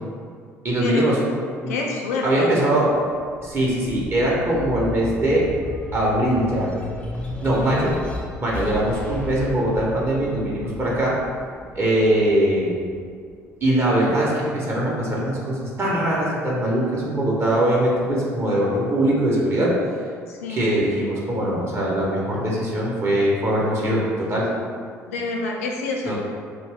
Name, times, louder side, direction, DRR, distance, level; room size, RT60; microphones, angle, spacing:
voice 1, 0.6-1.2 1.6-1.7 2.2-2.9 3.4-5.5 5.9-6.7 7.4-8.0 8.4-11.2 11.7-12.7 13.6-19.7 20.5-24.5 26.0-26.2, right 1 dB, 30° right, -5 dB, 0.8 m, -21 dB
voice 2, 1.7-2.5 20.3-20.8 25.1-26.2, left 3 dB, 80° left, -1 dB, 0.4 m, -28 dB
sound 1, 3.2-13.7 14.2-15.4, left 2 dB, 15° left, 0.6 m, -35 dB
2.6 x 2.3 x 3.4 m, 2.1 s
hypercardioid pair, 55°, 8 cm